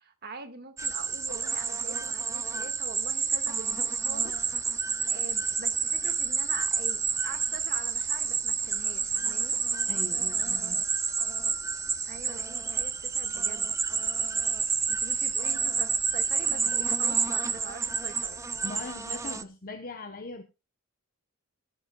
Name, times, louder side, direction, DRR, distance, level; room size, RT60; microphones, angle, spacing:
voice 1, 0.0-4.8 5.1-9.6 12.1-13.8 14.9-18.4, right 3 dB, 45° right, 1.8 m, -44 dB
sound 1, 0.8-19.4, right 5 dB, 15° right, 0.5 m, -29 dB
voice 2, 9.9-10.8 18.6-20.4, left 2 dB, 40° left, 1.0 m, -40 dB
19.5 x 11.5 x 2.3 m
head